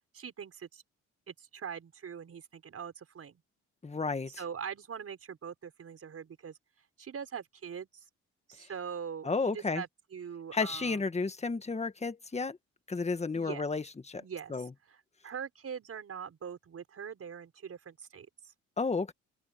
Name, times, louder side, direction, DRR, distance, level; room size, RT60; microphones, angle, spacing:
voice 1, 0.1-0.8 1.3-3.4 4.4-6.6 7.0-7.9 8.5-11.0 13.3-13.7 14.2-14.5 14.9-18.3, right 7 dB, 50° right, 6.1 m, -42 dB
voice 2, 3.8-4.3 8.6-8.7 9.2-9.8 10.5-12.6 12.9-14.2 14.5-14.7 18.8-19.1, left 4 dB, 20° left, 1.7 m, -32 dB
open air
cardioid pair, 90°, 30 cm